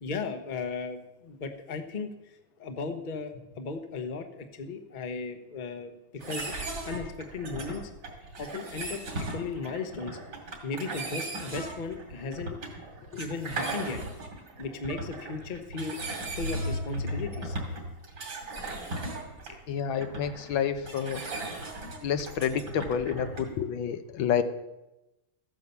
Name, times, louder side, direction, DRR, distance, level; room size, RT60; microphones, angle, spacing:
voice 1, 0.0-5.9 6.2-6.5 6.8-7.8 8.4-10.2 10.6-12.5 13.2-14.0 14.6-16.0 16.4-17.6, left 4 dB, 30° left, 7 dB, 0.9 m, -36 dB
sound 1, 6.2-23.6, right 1 dB, 60° right, 3.2 m, -37 dB
voice 2, 19.7-21.2 22.0-24.4, left 8 dB, 80° left, 10 dB, 1.6 m, -29 dB
14.5 x 9.7 x 6.9 m, 0.96 s
omnidirectional pair, 2.1 m